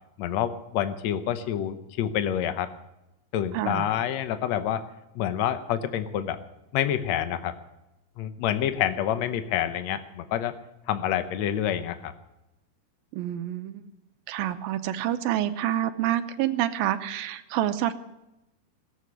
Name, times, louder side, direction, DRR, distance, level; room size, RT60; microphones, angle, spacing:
voice 1, 0.2-2.7 3.3-4.8 5.1-6.4 6.7-7.6 8.2-10.6 10.9-12.1, left 10 dB, 85° left, 10 dB, 1.5 m, -27 dB
voice 2, 3.5-3.9 13.1-13.8 14.3-17.9, right 12 dB, 80° right, 10 dB, 2.4 m, -27 dB
17.5 x 8.3 x 9.5 m, 0.92 s
omnidirectional pair, 4.5 m